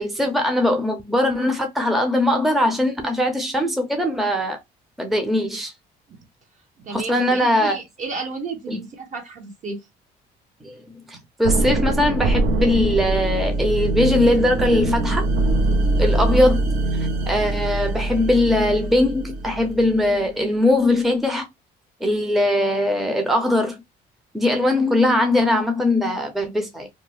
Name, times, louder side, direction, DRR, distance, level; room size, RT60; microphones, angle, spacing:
voice 1, 0.0-4.6 5.0-5.7 6.9-7.8 8.7-8.8 10.6-10.7 11.1-15.2 16.0-16.6 17.3-21.5 22.0-23.8 24.3-26.9, left 1 dB, ahead, 0.6 m, -20 dB
voice 2, 6.8-9.8, right 3 dB, 50° right, 1.0 m, -32 dB
sound 1, 11.4-20.3, right 2 dB, 80° right, 0.6 m, -23 dB
2.8 x 2.0 x 3.1 m
cardioid pair, 110°, 17 cm